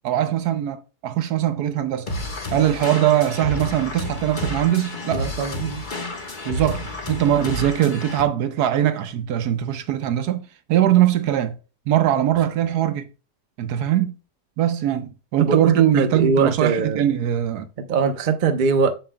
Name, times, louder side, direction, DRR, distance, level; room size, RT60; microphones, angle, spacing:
voice 1, 0.0-2.1 2.5-5.3 6.4-11.6 11.9-13.1 13.6-14.2 14.6-17.7, right 11 dB, 75° right, 1.2 m, -21 dB
sound 1, 2.1-8.2, left 1 dB, 30° left, 1.2 m, -30 dB
voice 2, 5.0-5.8 15.4-17.1 17.8-18.9, right 5 dB, 45° right, 0.6 m, -22 dB
7.2 x 6.9 x 2.2 m
omnidirectional pair, 1.8 m